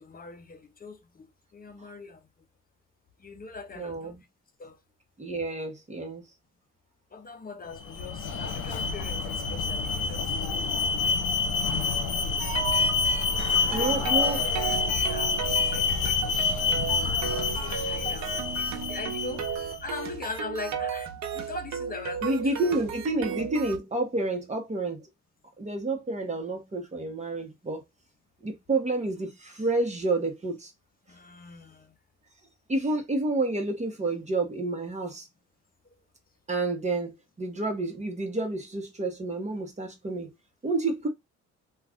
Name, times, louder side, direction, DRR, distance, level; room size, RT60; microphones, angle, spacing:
voice 1, 0.1-0.9 1.5-2.2 3.2-4.1 4.6-4.7 7.1-10.2 13.6-14.2 14.9-16.9 17.7-18.3 18.9-19.4 19.8-21.1 21.4-22.4 31.2-31.7, left 4 dB, 30° left, 0.7 m, -40 dB
voice 2, 3.7-4.2 5.2-6.2 8.0-8.2 13.7-14.4 22.2-25.0 25.6-27.8 28.4-30.7 32.7-35.3 36.5-40.3 40.6-41.1, right 2 dB, 25° right, 1.0 m, -29 dB
Alarm, 7.8-19.8, left 4 dB, 80° left, 0.8 m, -27 dB
sound 1, 12.4-23.8, right 7 dB, 65° right, 0.8 m, -35 dB
2.4 x 2.4 x 3.4 m
cardioid pair, 90°, 30 cm